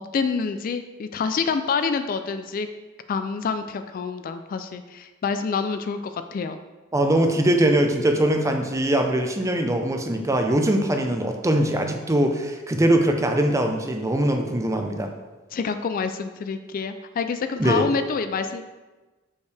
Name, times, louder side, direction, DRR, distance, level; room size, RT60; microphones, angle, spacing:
voice 1, 0.1-2.7 3.1-6.6 15.5-18.6, left 5 dB, 45° left, 9 dB, 0.3 m, -27 dB
voice 2, 6.9-15.1 17.6-17.9, right 1 dB, 15° right, 4 dB, 0.5 m, -22 dB
6.5 x 5.4 x 3.4 m, 1.2 s
head